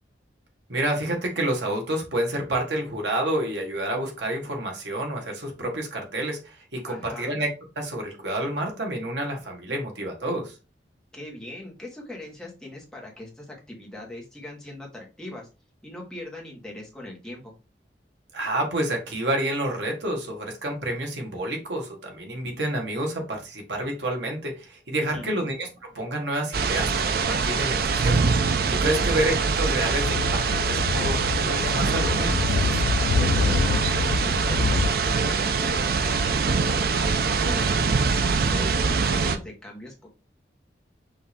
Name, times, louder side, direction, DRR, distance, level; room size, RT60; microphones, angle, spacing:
voice 1, 0.7-7.5 7.8-10.5 18.3-25.7 25.9-30.4 30.7-32.6, right 1 dB, 75° right, 2 dB, 1.4 m, -29 dB
voice 2, 6.9-7.4 11.1-15.5 15.8-17.5 25.0-25.4 28.9-29.2 32.9-36.7 37.1-40.1, left 1 dB, 5° left, -2 dB, 1.2 m, -40 dB
sound 1, 26.5-39.4, right 4 dB, 55° right, 0.5 m, -24 dB
Speech / Wind, 30.0-34.9, left 4 dB, 90° left, 0.4 m, -26 dB
5.6 x 2.7 x 3.4 m, 0.30 s
head